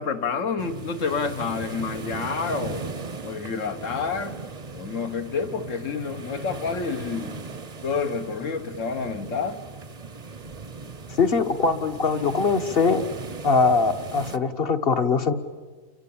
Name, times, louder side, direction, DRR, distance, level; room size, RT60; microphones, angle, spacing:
voice 1, 0.0-2.9 3.2-4.4 4.7-7.3 7.8-9.6, left 5 dB, 65° left, 9 dB, 1.7 m, -29 dB
sound 1, 0.6-14.4, right 4 dB, 35° right, 0.9 m, -38 dB
voice 2, 11.2-13.0 13.4-15.3, left 4 dB, 45° left, 8 dB, 1.5 m, -22 dB
29.0 x 23.0 x 8.7 m, 1.5 s
omnidirectional pair, 1.4 m